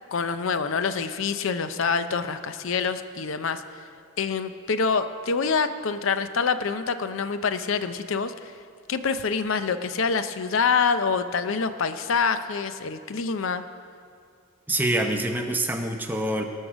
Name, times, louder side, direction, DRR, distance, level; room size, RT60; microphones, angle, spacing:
voice 1, 0.1-3.6 4.2-8.5 8.9-13.6, left 5 dB, 65° left, 11 dB, 0.5 m, -26 dB
voice 2, 14.7-16.4, right 1 dB, 10° right, 4 dB, 0.7 m, -25 dB
19.0 x 6.4 x 6.2 m, 2.2 s
head